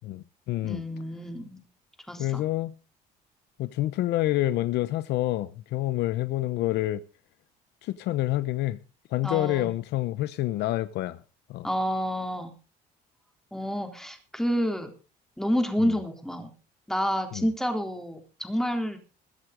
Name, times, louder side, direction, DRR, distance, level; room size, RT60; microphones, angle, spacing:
voice 1, 0.0-0.8 2.2-2.7 3.6-7.0 7.8-8.8 9.1-11.2 11.5-11.7 15.8-15.9 17.3-17.4, left 15 dB, 80° left, 0.9 m, -28 dB
voice 2, 0.6-1.6 2.1-2.4 9.2-9.7 11.6-12.5 13.5-14.9 15.4-16.5 16.9-19.0, equal, ahead, 3.7 m, -29 dB
22.0 x 8.0 x 5.2 m
cardioid pair, 110°, 17 cm